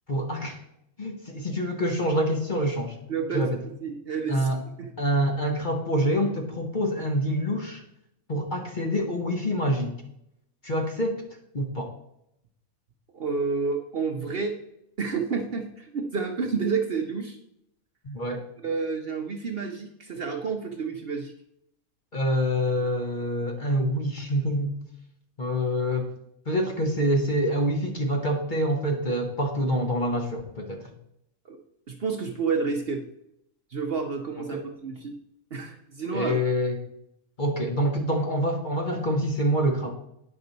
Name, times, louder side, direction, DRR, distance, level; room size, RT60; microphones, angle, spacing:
voice 1, 0.1-0.6 1.0-3.0 3.3-3.6 4.3-4.6 5.0-7.8 8.3-9.9 10.6-11.2 11.5-11.9 18.0-18.5 22.1-24.8 25.4-26.1 26.5-30.9 34.4-34.7 36.1-36.8 37.4-39.9, equal, 40° left, 2 dB, 0.9 m, -26 dB
voice 2, 3.1-3.5 3.8-4.5 4.8-4.9 13.1-14.6 15.0-17.4 18.6-21.3 31.5-31.6 31.9-33.0 33.7-35.1 35.5-36.4, right 5 dB, 50° right, 3 dB, 0.8 m, -29 dB
9.3 x 6.0 x 4.0 m, 0.79 s
omnidirectional pair, 1.5 m